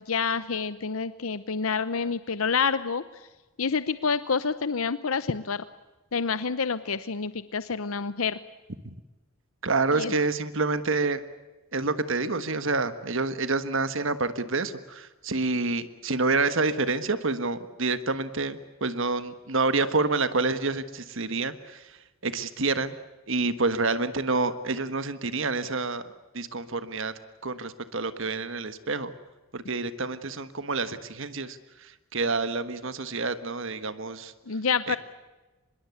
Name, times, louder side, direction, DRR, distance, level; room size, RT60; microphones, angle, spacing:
voice 1, 0.0-3.0 3.6-5.6 6.1-8.4 9.9-10.1 34.5-35.0, left 5 dB, 75° left, 14 dB, 0.8 m, -28 dB
voice 2, 9.6-11.2 11.7-21.8 22.2-22.9 23.3-26.0 26.3-27.1 27.4-29.1 29.5-34.3 34.9-35.0, right 3 dB, 60° right, 12 dB, 1.5 m, -28 dB
25.5 x 22.0 x 8.2 m, 1.1 s
head